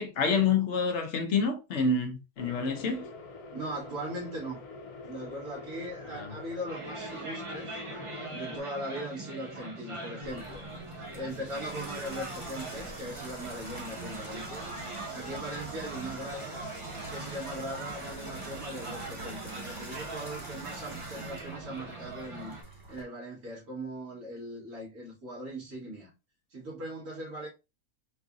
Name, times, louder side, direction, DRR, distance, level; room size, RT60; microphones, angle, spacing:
voice 1, 0.0-3.0 6.1-6.3, left 4 dB, 60° left, 0.9 m, -28 dB
sound 1, 2.4-8.6, left 4 dB, 75° left, 1.2 m, -45 dB
voice 2, 3.5-4.7 5.0-7.8 8.3-10.6 11.1-14.7 15.1-16.6 17.1-22.6 22.9-26.1 26.5-27.5, right 1 dB, 75° right, 2.4 m, -39 dB
sound 2, 6.7-22.6, right 2 dB, 35° right, 0.5 m, -41 dB
Water tap faucet / Bathtub (filling or washing), 10.2-23.0, right 2 dB, 15° right, 1.1 m, -45 dB
4.7 x 2.4 x 2.4 m
omnidirectional pair, 1.6 m